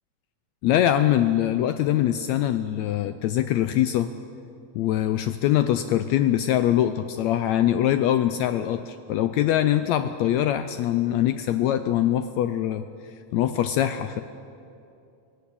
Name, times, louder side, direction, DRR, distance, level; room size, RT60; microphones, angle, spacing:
voice 1, 0.6-4.1 4.7-12.8 13.3-14.2, left 12 dB, 80° left, 10 dB, 1.6 m, -23 dB
18.0 x 17.5 x 8.5 m, 2.6 s
omnidirectional pair, 3.7 m